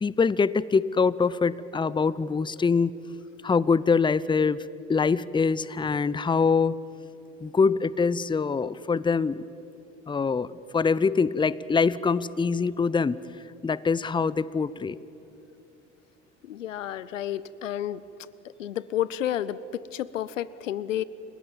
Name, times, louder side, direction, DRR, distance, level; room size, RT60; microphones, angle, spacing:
voice 1, 0.0-2.9 3.4-4.6 4.9-6.7 7.4-9.4 10.1-13.2 13.6-15.0, left 5 dB, 15° left, 20 dB, 0.6 m, -24 dB
voice 2, 16.4-18.0 18.6-21.0, left 11 dB, 90° left, 19 dB, 0.6 m, -31 dB
29.5 x 17.0 x 7.3 m, 3.0 s
hypercardioid pair, 65°, 37 cm